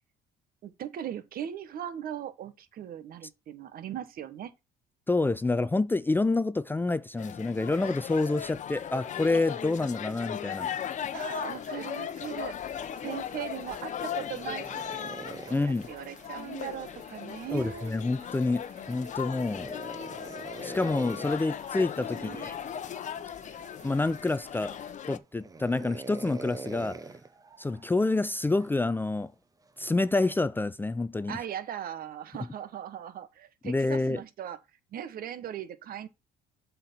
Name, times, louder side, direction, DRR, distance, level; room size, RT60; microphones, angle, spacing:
voice 1, 0.6-4.5 11.1-12.6 13.0-17.9 22.1-22.6 31.3-34.6 34.9-36.1, right 10 dB, 60° right, 1.3 m, -39 dB
voice 2, 5.1-10.7 15.5-15.9 17.5-19.8 20.6-22.6 23.8-24.8 25.1-27.0 27.6-29.3 29.8-31.4 33.6-34.2, left 3 dB, 10° left, 0.5 m, -28 dB
sound 1, 7.2-25.2, left 9 dB, 45° left, 0.9 m, -38 dB
sound 2, 10.7-25.0, right 3 dB, 40° right, 3.5 m, -55 dB
sound 3, 13.8-17.1 19.4-21.5 22.6-23.0 23.6-23.7 24.4-24.9 25.4-28.8 29.7-30.0, right 4 dB, 20° right, 0.8 m, -44 dB
7.7 x 4.6 x 5.6 m
cardioid pair, 110°, 17 cm